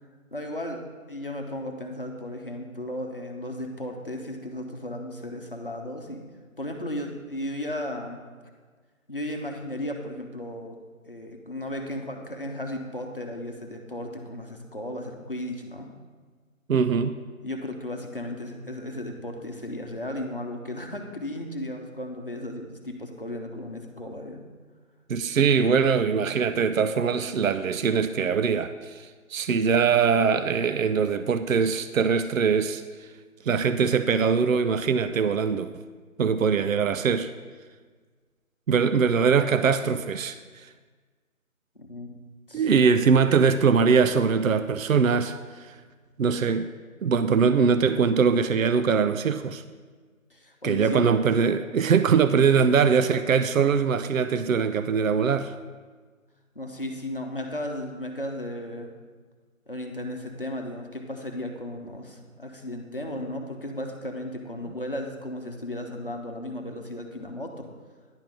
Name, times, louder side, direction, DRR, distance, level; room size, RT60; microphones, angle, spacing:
voice 1, 0.3-6.3 6.6-8.2 9.1-10.8 11.1-15.9 17.4-24.4 41.7-42.1 42.5-43.1 50.3-51.2 56.5-58.9 59.7-67.7, left 1 dB, 40° left, 2 dB, 0.9 m, -35 dB
voice 2, 16.7-17.2 25.1-33.1 33.4-35.7 36.2-37.3 38.7-40.7 42.5-45.8 46.2-46.7 47.0-49.6 50.6-55.5, right 6 dB, 70° right, 12 dB, 0.5 m, -22 dB
10.5 x 3.8 x 7.3 m, 1.5 s
figure-of-eight pair, 180°, 42 cm